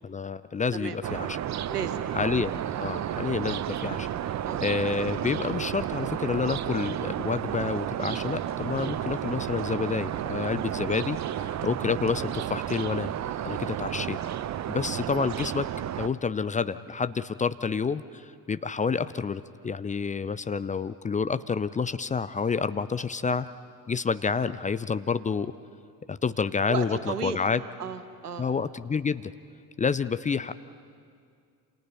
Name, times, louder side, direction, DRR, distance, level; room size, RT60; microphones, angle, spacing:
voice 1, 0.0-1.4 2.1-4.1 4.6-13.1 13.4-14.2 14.7-15.7 16.0-23.5 23.9-25.5 26.1-27.6 28.4-29.3 29.8-30.5, left 5 dB, 15° left, 14 dB, 0.6 m, -29 dB
sound 1, 1.0-16.1, right 11 dB, 35° right, 0.8 m, -32 dB
voice 2, 1.7-2.3 4.4-4.7 26.7-27.4 27.8-28.5, right 7 dB, 85° right, 11 dB, 1.2 m, -34 dB
28.0 x 28.0 x 5.5 m, 2.3 s
figure-of-eight pair, 50°, 45 cm